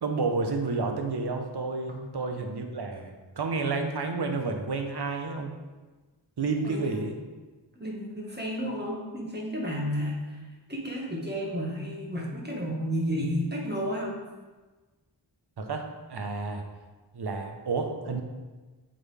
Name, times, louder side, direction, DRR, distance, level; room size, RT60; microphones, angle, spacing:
voice 1, 0.0-5.5 6.4-7.2 15.6-15.8 16.1-16.6 17.1-18.2, right 4 dB, 65° right, 4 dB, 0.9 m, -30 dB
voice 2, 6.6-7.0 7.7-10.4 10.7-14.2, equal, 25° right, -3 dB, 1.6 m, -32 dB
8.0 x 3.9 x 3.4 m, 1.3 s
cardioid pair, 45°, 43 cm